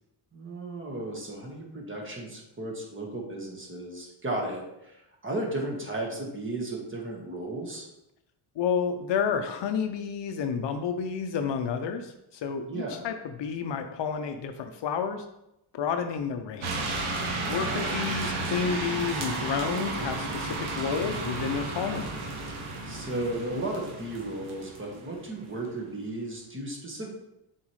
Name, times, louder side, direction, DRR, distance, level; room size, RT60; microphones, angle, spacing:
voice 1, 0.3-7.9 12.7-13.1 17.5-18.0 22.9-27.1, right 2 dB, 25° right, 0 dB, 1.5 m, -35 dB
voice 2, 8.6-15.2 15.7-17.0 17.5-22.3, left 6 dB, 60° left, 6 dB, 0.7 m, -30 dB
sound 1, 16.6-25.5, right 2 dB, 70° right, 1.4 m, -33 dB
7.3 x 4.6 x 3.2 m, 0.85 s
cardioid pair, 115°, 50 cm